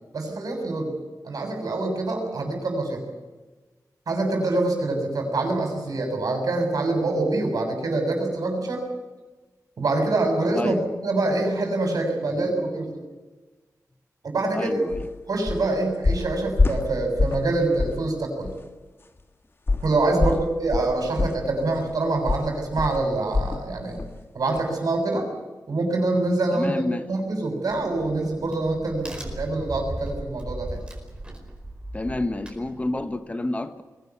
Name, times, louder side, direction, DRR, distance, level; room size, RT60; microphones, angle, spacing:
voice 1, 0.1-0.9 1.2-3.0 4.1-8.9 9.8-13.0 14.2-14.8 15.3-18.5 19.8-24.0 24.3-25.3 25.7-30.8, right 2 dB, 70° right, 4 dB, 6.9 m, -25 dB
voice 2, 14.5-15.1 20.2-20.4 26.5-27.0 31.9-33.8, left 2 dB, 20° left, 10 dB, 1.2 m, -29 dB
sound 1, 14.9-15.1 15.5-15.7 16.0-17.5 17.8-18.0 18.4-18.6 19.7-23.7 24.0-24.2 24.6-24.7, left 3 dB, 40° left, 1.8 m, -25 dB
Crack, 27.7-33.2, right 1 dB, 15° right, 4.7 m, -37 dB
22.5 x 18.0 x 9.5 m, 1.3 s
wide cardioid pair, 140°, 6 cm